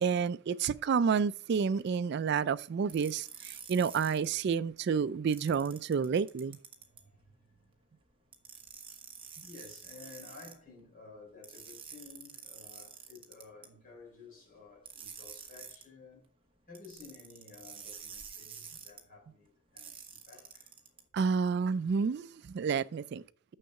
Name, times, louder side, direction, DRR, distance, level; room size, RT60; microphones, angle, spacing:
voice 1, 0.0-6.6 21.1-23.2, right 6 dB, 50° right, 0.3 m, -30 dB
voice 2, 0.6-0.9 1.7-1.8 3.5-3.7 6.9-8.0 9.4-16.2 16.7-20.8, left 4 dB, 40° left, 4.4 m, -54 dB
sound 1, 2.9-4.3 5.3-7.0 8.3-10.5 11.4-13.7 14.8-15.9 16.7-19.0 19.8-21.0, right 7 dB, 25° right, 1.2 m, -48 dB
6.6 x 6.3 x 5.7 m
head